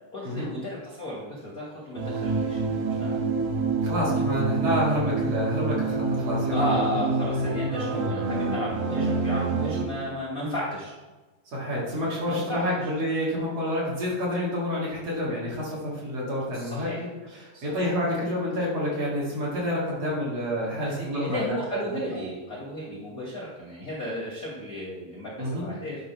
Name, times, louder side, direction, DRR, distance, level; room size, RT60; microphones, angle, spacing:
voice 1, 0.1-3.2 6.5-10.9 12.3-12.6 16.5-17.1 17.5-17.9 20.8-26.0, left 1 dB, 55° left, -4 dB, 0.9 m, -34 dB
sound 1, 2.0-9.9, right 3 dB, 90° right, 3.2 m, -27 dB
voice 2, 3.8-6.8 7.3-7.4 8.5-8.6 10.4-10.5 11.5-21.4 21.7-22.2 25.4-25.7, equal, 50° right, -6 dB, 3.2 m, -28 dB
10.5 x 3.8 x 5.7 m, 1.2 s
omnidirectional pair, 4.0 m